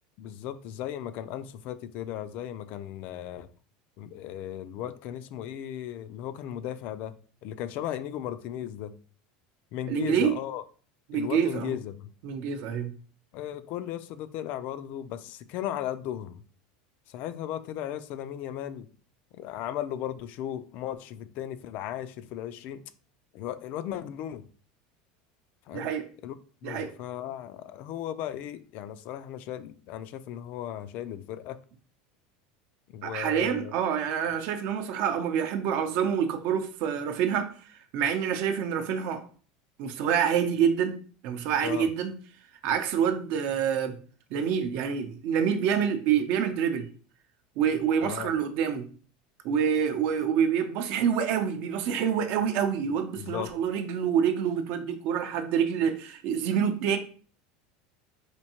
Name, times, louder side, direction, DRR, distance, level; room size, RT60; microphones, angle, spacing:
voice 1, 0.2-3.5 4.0-7.1 7.4-9.0 9.7-10.6 11.1-12.1 13.3-16.4 17.1-18.9 19.3-22.8 23.3-24.5 25.7-25.9 26.2-26.3 26.6-31.6 32.9-33.7 41.6-41.9 48.0-48.3 53.2-53.5, left 11 dB, 55° left, 0.3 m, -36 dB
voice 2, 9.9-10.4 11.1-11.7 12.2-12.9 25.7-26.1 26.6-26.9 33.0-39.2 39.8-41.0 41.2-42.1 42.6-44.0 44.3-46.9 47.6-48.9 49.4-57.0, right 8 dB, 60° right, 0.6 m, -27 dB
4.4 x 2.6 x 2.9 m
supercardioid pair, 130°, 3 cm